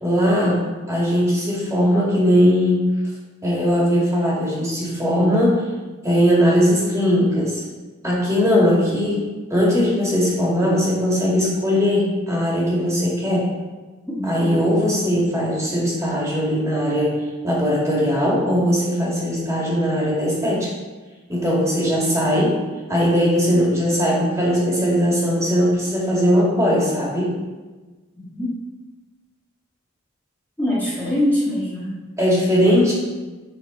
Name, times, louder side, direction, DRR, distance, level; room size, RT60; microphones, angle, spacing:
voice 1, 0.0-0.6 0.9-2.8 3.4-5.6 6.0-7.6 8.0-9.2 9.5-13.5 14.2-20.7 21.3-22.6 22.9-27.3 32.2-32.9, equal, 15° right, -5 dB, 2.4 m, -19 dB
voice 2, 14.1-14.5 28.1-28.5 30.6-32.0, left 1 dB, 10° left, -10 dB, 1.6 m, -24 dB
10.0 x 4.5 x 4.0 m, 1.3 s
head